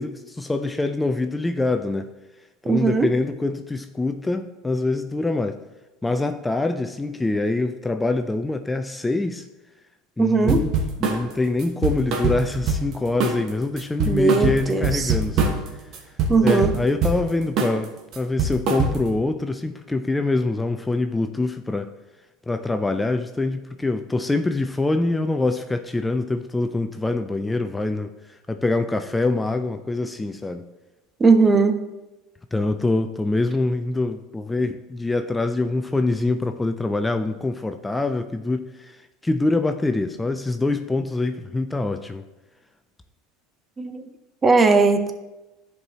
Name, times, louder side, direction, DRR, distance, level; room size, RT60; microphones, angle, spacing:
voice 1, 0.0-2.1 2.6-5.6 6.0-9.5 10.2-10.7 11.0-15.6 16.4-21.9 22.5-30.7 32.5-42.2, left 2 dB, 10° left, 7 dB, 0.4 m, -24 dB
voice 2, 2.7-3.1 10.2-10.6 14.1-15.1 16.3-16.7 31.2-31.8 43.8-44.0 44.4-45.1, right 4 dB, 25° right, 8 dB, 0.7 m, -18 dB
sound 1, 10.5-11.2 11.6-12.9 13.2-13.5 13.8-15.7 15.9-17.2 17.6-17.8 18.1-19.2, right 4 dB, 55° right, 1.2 m, -23 dB
10.5 x 4.7 x 2.8 m, 1.1 s
hypercardioid pair, 85°, 0 cm